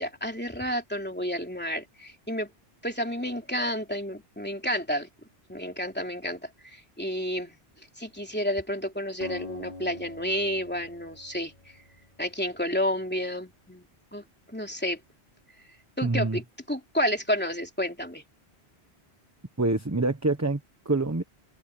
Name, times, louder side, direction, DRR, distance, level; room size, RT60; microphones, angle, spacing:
voice 1, 0.0-2.5 2.8-5.1 5.5-7.6 8.0-11.5 12.2-13.9 14.1-15.0 16.0-16.4 16.7-18.2, equal, 10° left, 3.2 m, -30 dB
Acoustic guitar, 9.2-12.8, left 2 dB, 50° left, 4.6 m, -45 dB
voice 2, 16.0-16.4 19.6-21.2, right 2 dB, 15° right, 1.0 m, -26 dB
omnidirectional pair, 1.1 m